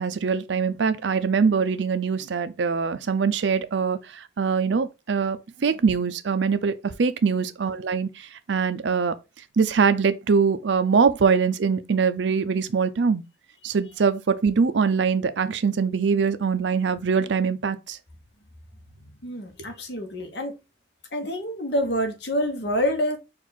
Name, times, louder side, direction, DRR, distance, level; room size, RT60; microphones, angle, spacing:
voice 1, 0.0-9.1 9.6-13.2 13.6-18.0, right 5 dB, 80° right, 0.5 m, -23 dB
voice 2, 19.2-20.5 21.1-23.2, equal, 65° left, 1.2 m, -27 dB
4.5 x 2.5 x 4.1 m
head